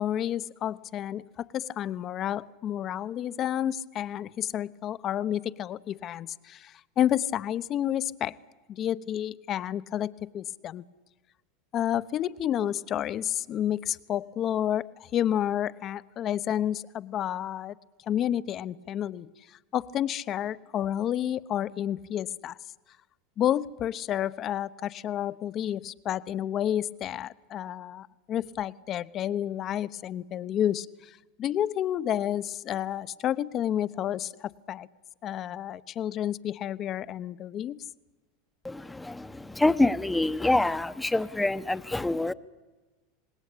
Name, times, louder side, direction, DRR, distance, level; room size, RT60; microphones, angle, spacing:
voice 1, 0.0-8.3 8.7-10.8 11.7-17.7 18.0-19.3 19.7-22.6 23.4-34.9 35.2-37.8, left 11 dB, 40° left, 16 dB, 0.9 m, -30 dB
voice 2, 38.6-42.3, left 2 dB, 10° left, 13 dB, 1.0 m, -26 dB
26.5 x 20.0 x 8.5 m, 1.2 s
hypercardioid pair, 95°, 0 cm